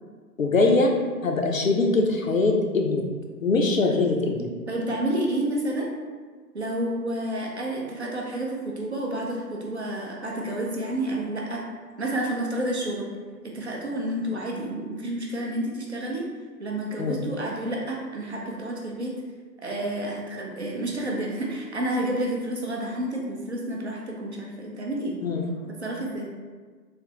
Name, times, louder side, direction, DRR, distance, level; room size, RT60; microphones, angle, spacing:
voice 1, 0.4-0.9 1.2-3.0 3.4-4.5 17.0-17.2 25.2-25.4, left 3 dB, 55° left, 2 dB, 0.5 m, -22 dB
voice 2, 4.7-5.9 6.5-11.6 12.0-13.1 13.4-16.3 16.6-19.2 19.6-25.2 25.8-26.3, right 1 dB, 45° right, -2 dB, 0.6 m, -30 dB
3.2 x 2.9 x 3.1 m, 1.5 s
figure-of-eight pair, 135°, 49 cm